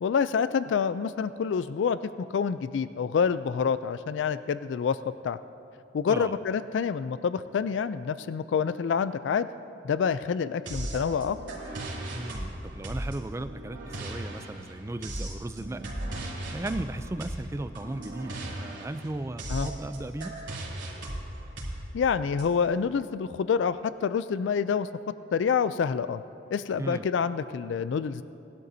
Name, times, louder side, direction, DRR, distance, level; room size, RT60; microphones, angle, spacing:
voice 1, 0.0-5.0 5.2-5.4 5.9-9.5 9.8-11.4 19.5-19.7 21.9-24.9 25.3-26.2 26.5-28.2, left 6 dB, 80° left, 14 dB, 0.3 m, -27 dB
sound 1, 10.7-22.4, right 1 dB, 80° right, 3.0 m, -37 dB
voice 2, 12.1-15.9 16.5-20.3 26.8-27.1, right 2 dB, 15° right, 11 dB, 0.3 m, -36 dB
19.5 x 12.0 x 2.7 m, 2.8 s
head